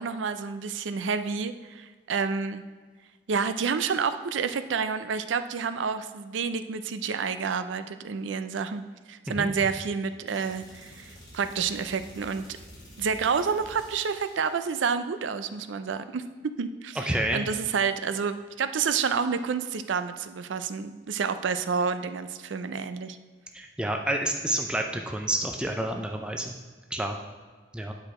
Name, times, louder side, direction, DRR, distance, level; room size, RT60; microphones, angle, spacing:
voice 1, 0.0-2.6 3.3-8.8 9.1-12.5 13.0-16.2 16.6-23.2, right 5 dB, 85° right, 11 dB, 0.4 m, -29 dB
sound 1, 10.3-14.7, equal, 25° left, 2.4 m, -49 dB
voice 2, 17.0-17.5 23.5-26.5 26.9-27.2 27.7-27.9, right 1 dB, 5° right, 3 dB, 0.4 m, -29 dB
8.8 x 4.8 x 4.3 m, 1.5 s
head